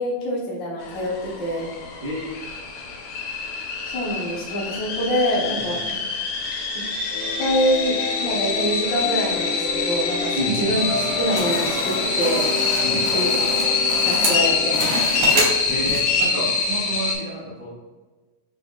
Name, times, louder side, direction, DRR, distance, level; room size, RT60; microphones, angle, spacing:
voice 1, 0.0-1.7 3.9-5.8 6.7-6.8 7.4-10.8 11.2-12.5 13.1-13.4 14.0-14.9, equal, 55° left, -5 dB, 1.3 m, -25 dB
sound 1, 0.8-17.2, left 4 dB, 75° left, 2.1 m, -25 dB
voice 2, 2.0-2.5 5.4-5.6 5.9-6.0 10.3-10.8 12.8-13.0 15.7-17.7, equal, 85° right, -10 dB, 0.7 m, -29 dB
sound 2, 7.1-14.8, left 3 dB, 90° left, 2.6 m, -32 dB
sound 3, 10.8-16.2, right 1 dB, 60° right, 1.7 m, -27 dB
5.8 x 3.8 x 2.4 m, 1.3 s
omnidirectional pair, 3.5 m